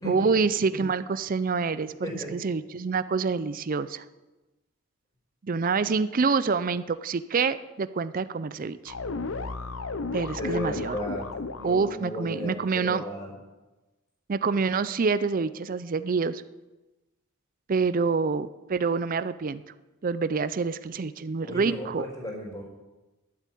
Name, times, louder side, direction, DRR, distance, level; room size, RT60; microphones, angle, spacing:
voice 1, 0.0-4.0 5.4-8.9 10.1-11.0 11.6-13.0 14.3-16.4 17.7-19.6 20.0-22.1, right 4 dB, 40° right, 14 dB, 0.5 m, -27 dB
sound 1, 8.9-12.0, left 3 dB, 65° left, 0.7 m, -34 dB
voice 2, 10.4-11.3 11.6-13.3 21.4-22.6, equal, 15° left, -2 dB, 4.8 m, -35 dB
12.0 x 8.3 x 9.2 m, 1.1 s
head